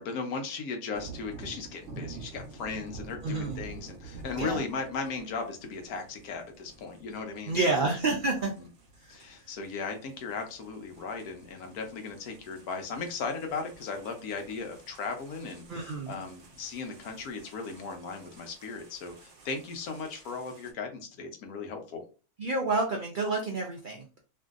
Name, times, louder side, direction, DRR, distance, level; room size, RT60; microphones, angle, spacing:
voice 1, 0.0-7.9 9.1-22.0, left 4 dB, 85° left, 4 dB, 1.2 m, -37 dB
sound 1, 0.9-20.7, right 3 dB, 60° right, 1.0 m, -49 dB
voice 2, 3.2-3.6 4.3-4.6 7.5-8.5 9.0-9.2 15.7-16.2 22.4-24.1, right 3 dB, 85° right, 1 dB, 0.4 m, -29 dB
2.9 x 2.6 x 2.4 m, 0.34 s
omnidirectional pair, 1.5 m